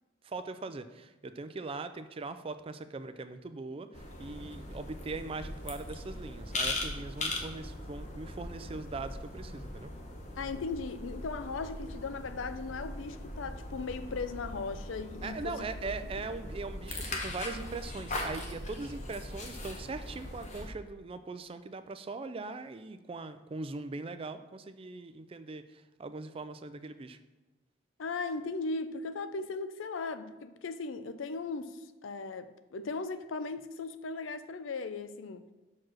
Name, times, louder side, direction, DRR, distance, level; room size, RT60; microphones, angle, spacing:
voice 1, 0.2-9.9 15.2-27.2, right 3 dB, 30° right, 11 dB, 0.4 m, -41 dB
sound 1, 3.9-20.7, left 2 dB, 40° left, 0.9 m, -40 dB
voice 2, 10.4-16.2 28.0-35.5, left 4 dB, 85° left, 12 dB, 0.5 m, -38 dB
5.9 x 4.6 x 6.3 m, 1.1 s
head